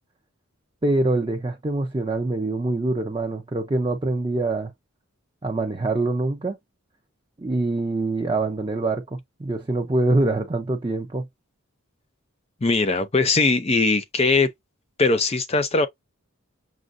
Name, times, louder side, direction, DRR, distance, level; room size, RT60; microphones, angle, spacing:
voice 1, 0.8-4.7 5.4-6.6 7.4-11.3, right 2 dB, 20° right, 0.5 m, -24 dB
voice 2, 12.6-14.5 15.0-15.9, left 3 dB, 30° left, 0.5 m, -20 dB
6.2 x 2.1 x 2.5 m
head